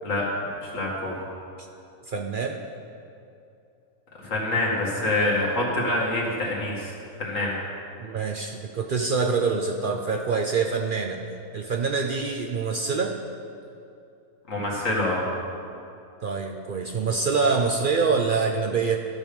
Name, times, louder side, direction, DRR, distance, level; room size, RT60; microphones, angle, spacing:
voice 1, 0.0-1.1 4.2-7.6 14.5-15.2, left 1 dB, 55° left, -4 dB, 2.4 m, -26 dB
voice 2, 2.1-2.6 8.0-11.2 11.5-13.1 16.2-19.0, right 4 dB, 75° right, 2 dB, 0.4 m, -25 dB
14.0 x 6.4 x 5.3 m, 2.7 s
omnidirectional pair, 1.6 m